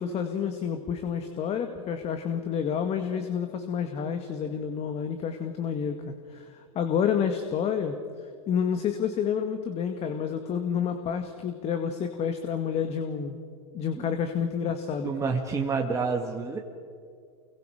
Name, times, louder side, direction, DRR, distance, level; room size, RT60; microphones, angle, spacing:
voice 1, 0.0-8.0 8.5-13.4 13.7-15.3, left 7 dB, 35° left, 7 dB, 1.9 m, -29 dB
voice 2, 15.0-16.6, right 4 dB, 15° right, 0 dB, 2.3 m, -28 dB
29.0 x 23.0 x 5.1 m, 2.2 s
hypercardioid pair, 95°, 18 cm